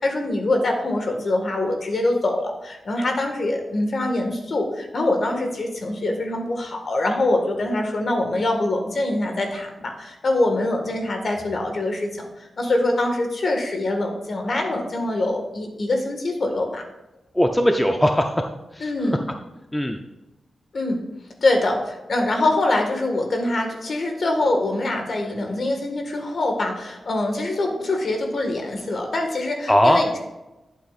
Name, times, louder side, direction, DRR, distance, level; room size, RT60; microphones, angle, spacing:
voice 1, 0.0-12.1 12.4-16.8 18.8-19.2 20.7-21.0 21.4-30.2, left 2 dB, 50° left, 3 dB, 1.6 m, -24 dB
voice 2, 17.3-18.4 18.7-19.1 19.7-20.0 29.7-30.0, equal, 10° left, 4 dB, 0.5 m, -19 dB
11.0 x 8.4 x 2.5 m, 1.0 s
wide cardioid pair, 135°, 0 cm